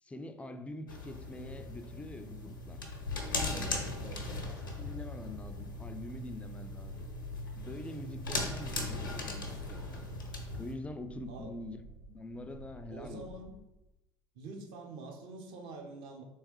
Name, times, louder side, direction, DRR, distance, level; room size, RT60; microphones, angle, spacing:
voice 1, 0.0-2.9 3.5-3.8 4.5-7.0 7.6-10.1 10.6-11.8 12.1-13.3, left 2 dB, 10° left, 9 dB, 0.3 m, -45 dB
sound 1, 0.9-10.7, left 2 dB, 80° left, 0.6 m, -39 dB
voice 2, 3.5-4.6 8.3-9.1 11.3-11.5 12.9-13.5 14.3-16.2, right 3 dB, 55° right, 3 dB, 0.7 m, -46 dB
sound 2, 5.2-13.6, right 3 dB, 80° right, 0.4 m, -52 dB
3.3 x 3.1 x 3.0 m, 0.96 s
figure-of-eight pair, 60°, 11 cm